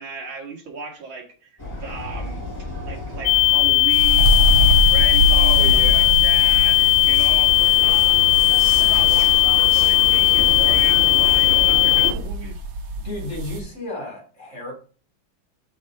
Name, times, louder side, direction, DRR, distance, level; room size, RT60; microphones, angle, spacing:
voice 1, 0.0-1.5 1.8-2.4 2.8-8.3 8.7-12.6, right 4 dB, 75° right, 1 dB, 2.5 m, -35 dB
Vehicle, 1.6-12.1, left 1 dB, 10° left, 1.9 m, -32 dB
sound 1, 3.3-12.1, left 19 dB, 90° left, 1.4 m, -17 dB
sound 2, 3.9-13.6, right 1 dB, 90° right, 1.9 m, -24 dB
voice 2, 5.3-6.2 13.0-14.7, left 1 dB, 35° left, -1 dB, 4.0 m, -32 dB
6.5 x 6.1 x 3.9 m, 0.38 s
omnidirectional pair, 2.2 m